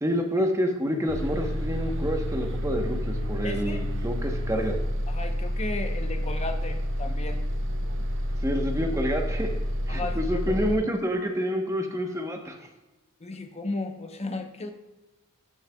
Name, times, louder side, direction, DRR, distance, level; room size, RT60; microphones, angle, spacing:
voice 1, 0.0-4.8 8.4-9.5 9.9-12.6, equal, 15° right, 3 dB, 0.9 m, -28 dB
Bus, 1.1-10.8, equal, 60° right, 1.3 m, -29 dB
voice 2, 3.4-3.8 5.1-7.4 9.9-10.7 13.2-14.7, left 2 dB, 30° left, 6 dB, 0.8 m, -35 dB
13.5 x 6.5 x 2.3 m, 1.1 s
head